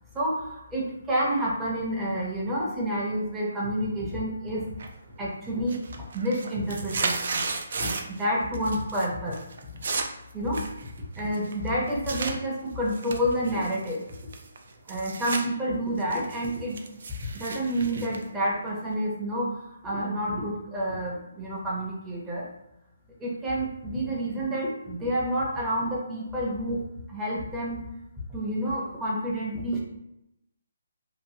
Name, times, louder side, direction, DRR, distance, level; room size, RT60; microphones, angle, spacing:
voice 1, 0.1-4.7 5.2-7.5 7.7-9.4 10.3-10.6 11.2-14.0 14.9-16.8 17.2-22.5 23.2-26.8 27.1-27.8 28.3-29.8, equal, 10° right, -5 dB, 0.7 m, -29 dB
sound 1, 4.8-5.2 5.5-8.2 8.5-9.1 9.3-12.3 12.9-15.4 15.8-19.0, right 4 dB, 60° right, 0.4 m, -34 dB
2.9 x 2.5 x 2.7 m, 0.86 s
hypercardioid pair, 155°, 0 cm